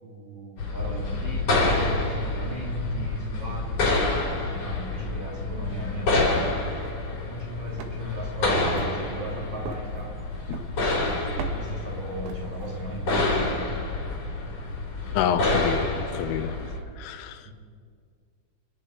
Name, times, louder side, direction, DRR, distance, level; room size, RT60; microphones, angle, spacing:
voice 1, 0.0-6.5 7.1-10.2 11.1-13.8 17.4-17.5, right 1 dB, 45° right, -3 dB, 3.0 m, -37 dB
sound 1, 0.6-16.8, left 2 dB, 40° left, 3.3 m, -28 dB
sound 2, 6.7-13.0, right 6 dB, 70° right, 2.8 m, -42 dB
voice 2, 15.1-16.6 17.0-17.4, left 9 dB, 90° left, 10 dB, 3.4 m, -28 dB
27.0 x 10.5 x 4.8 m, 2.1 s
omnidirectional pair, 5.8 m